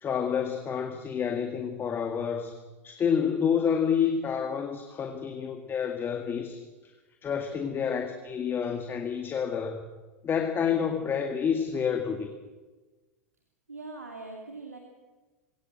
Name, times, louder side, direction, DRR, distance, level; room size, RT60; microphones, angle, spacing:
voice 1, 0.0-2.6 2.8-6.6 7.2-9.8 10.2-12.3, left 7 dB, 25° left, 5 dB, 2.1 m, -29 dB
voice 2, 13.7-14.8, right 3 dB, 85° right, 2 dB, 2.7 m, -41 dB
22.0 x 18.0 x 7.8 m, 1.2 s
figure-of-eight pair, 85°, 8 cm